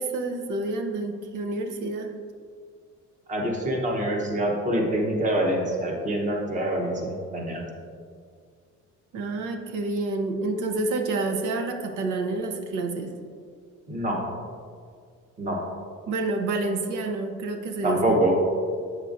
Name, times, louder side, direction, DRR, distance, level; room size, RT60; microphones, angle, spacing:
voice 1, 0.0-2.1 9.1-13.2 16.1-18.2, right 3 dB, 90° right, 5 dB, 0.7 m, -28 dB
voice 2, 3.3-7.7 13.9-14.2 15.4-15.6 17.8-18.3, right 1 dB, 25° right, 0 dB, 0.9 m, -25 dB
8.0 x 6.5 x 2.5 m, 2.1 s
cardioid pair, 175°, 30 cm